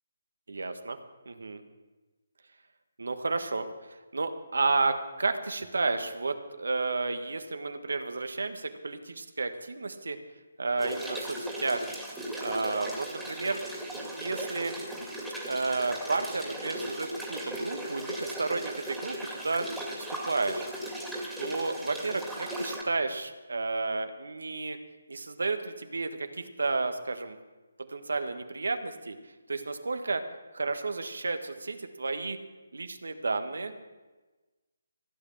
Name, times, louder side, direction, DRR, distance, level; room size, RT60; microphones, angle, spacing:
voice 1, 0.5-1.0 1.2-1.6 3.0-10.2 10.6-11.9 12.4-13.6 13.9-14.7 15.4-19.7 20.1-20.7 21.4-24.8 25.1-27.4 27.9-29.1 29.5-30.2 30.5-32.4 32.7-33.7, right 3 dB, 75° right, 7 dB, 1.6 m, -32 dB
sound 1, 10.8-22.8, right 1 dB, ahead, 2.4 m, -37 dB
15.5 x 8.4 x 7.2 m, 1.2 s
figure-of-eight pair, 150°, 0 cm